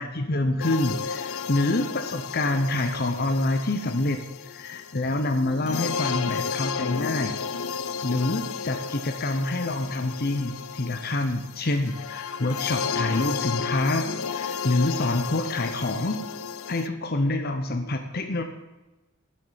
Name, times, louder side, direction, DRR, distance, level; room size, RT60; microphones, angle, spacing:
voice 1, 0.0-7.4 7.7-16.2 16.7-18.4, left 2 dB, 45° left, 5 dB, 0.9 m, -27 dB
sound 1, 0.6-16.9, left 6 dB, 85° left, 0.6 m, -33 dB
13.5 x 7.9 x 7.5 m, 1.1 s
head